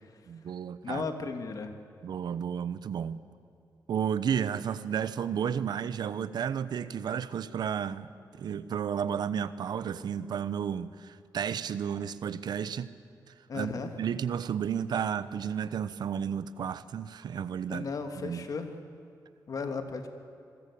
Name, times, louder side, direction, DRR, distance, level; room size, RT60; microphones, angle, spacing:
voice 1, 0.3-1.1 2.0-3.2 3.9-8.1 8.3-12.9 13.5-17.9 18.2-18.4, right 8 dB, 75° right, 1.0 m, -32 dB
voice 2, 0.8-1.7 13.5-13.9 17.7-18.7 19.5-20.1, left 4 dB, 55° left, 2.7 m, -35 dB
26.5 x 22.0 x 8.6 m
cardioid pair, 105°, 7 cm